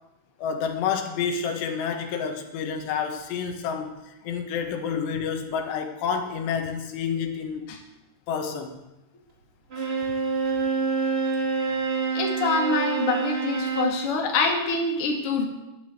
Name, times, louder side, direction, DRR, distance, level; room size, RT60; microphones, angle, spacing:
voice 1, 0.4-4.0 4.3-7.7 8.3-8.8, left 6 dB, 80° left, 5 dB, 3.5 m, -29 dB
Bowed string instrument, 9.7-14.0, right 5 dB, 30° right, 1.1 m, -26 dB
voice 2, 12.1-15.5, left 4 dB, 40° left, 1 dB, 2.5 m, -25 dB
12.5 x 11.0 x 7.8 m, 0.95 s
omnidirectional pair, 4.8 m